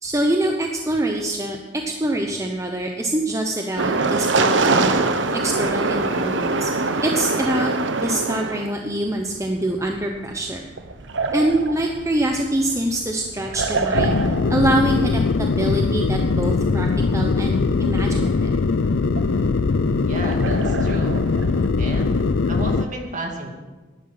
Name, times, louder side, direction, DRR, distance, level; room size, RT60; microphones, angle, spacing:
voice 1, 0.0-5.0 5.4-6.7 7.0-7.7 8.0-10.6 11.3-14.2 14.5-16.9 17.1-18.5, right 1 dB, 15° right, 2 dB, 0.9 m, -24 dB
sound 1, 3.8-8.7 9.5-22.8, right 3 dB, 75° right, 0.9 m, -25 dB
sound 2, 13.9-22.8, left 4 dB, 75° left, 0.5 m, -21 dB
voice 2, 20.1-21.2 21.8-23.5, right 1 dB, 40° right, 2 dB, 2.3 m, -32 dB
11.5 x 10.0 x 7.6 m, 1.3 s
head